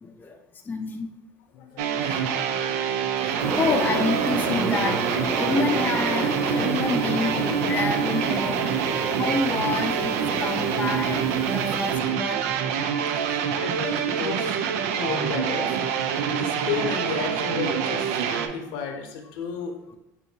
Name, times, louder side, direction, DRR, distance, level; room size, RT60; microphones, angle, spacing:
voice 1, 0.0-1.1 2.0-2.3 2.9-12.6, left 4 dB, 20° left, 3 dB, 0.4 m, -29 dB
voice 2, 1.5-3.2 12.9-14.6 14.8-15.9 16.3-20.0, left 6 dB, 75° left, 4 dB, 0.7 m, -34 dB
sound 1, 1.8-18.5, right 7 dB, 80° right, 0.3 m, -26 dB
sound 2, 3.4-12.0, right 2 dB, 35° right, 0.6 m, -30 dB
5.6 x 2.7 x 2.7 m, 0.90 s
supercardioid pair, 90°, 8 cm